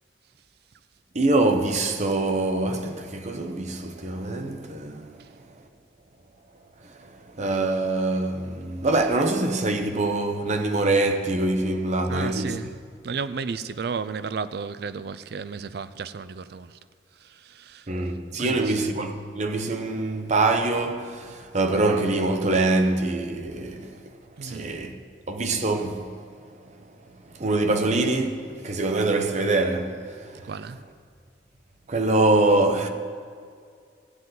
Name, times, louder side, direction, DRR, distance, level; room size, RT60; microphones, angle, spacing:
voice 1, 1.1-5.2 6.8-12.6 17.9-24.1 24.4-25.0 25.3-26.2 27.3-30.5 31.9-32.9, right 2 dB, 40° right, 0.8 m, -24 dB
voice 2, 12.1-12.8 13.0-16.8 17.2-17.9 18.4-18.8 24.4-24.7 30.4-30.8, right 5 dB, 65° right, 0.4 m, -33 dB
15.5 x 9.2 x 4.0 m
head